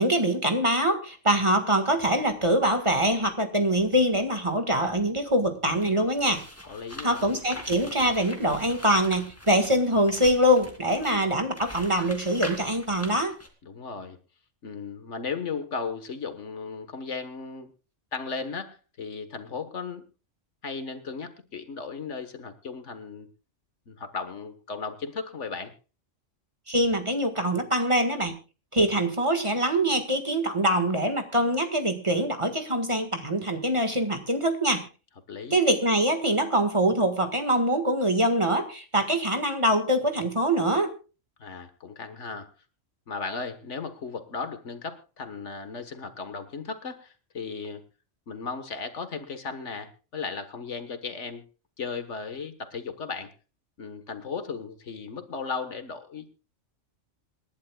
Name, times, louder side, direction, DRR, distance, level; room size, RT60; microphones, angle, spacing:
voice 1, 0.0-6.4 7.0-13.4 26.7-28.4 28.7-34.9 35.5-41.0, right 1 dB, 25° right, 6 dB, 1.7 m, -24 dB
sound 1, 5.7-13.5, equal, 10° left, 2.4 m, -43 dB
voice 2, 6.7-7.4 13.6-14.2 14.6-17.7 18.1-20.0 20.6-23.3 23.9-25.7 35.3-35.6 41.4-42.5 43.1-47.8 48.3-51.4 51.8-53.3 53.8-56.3, left 5 dB, 70° left, 9 dB, 1.7 m, -36 dB
27.0 x 11.5 x 2.3 m, 0.33 s
omnidirectional pair, 1.3 m